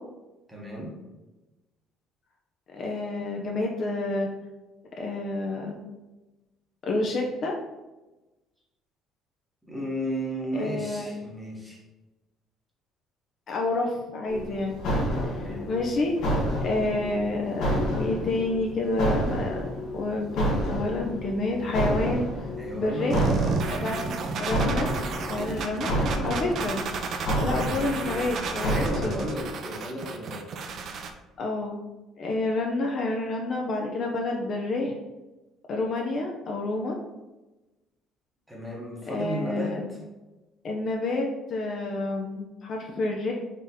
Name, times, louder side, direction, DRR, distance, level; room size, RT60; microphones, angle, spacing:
voice 1, 0.5-1.0 9.6-11.8 15.3-15.7 22.6-23.5 27.6-27.9 28.7-30.5 38.5-40.0, equal, 5° right, -4 dB, 0.9 m, -34 dB
voice 2, 2.7-4.3 5.0-5.8 6.8-7.5 10.5-11.1 13.5-14.8 15.3-16.1 16.6-19.7 19.9-22.3 22.7-23.3 23.7-25.0 25.3-26.8 27.4-29.2 31.4-31.8 32.2-35.0 35.7-36.9 39.1-39.8 40.6-43.3, left 2 dB, 40° left, 0 dB, 0.4 m, -29 dB
sound 1, 14.3-29.5, equal, 60° left, 0.9 m, -30 dB
sound 2, 23.1-31.1, right 5 dB, 45° right, 0.4 m, -32 dB
3.8 x 3.4 x 2.7 m, 1.1 s
cardioid pair, 165°, 0 cm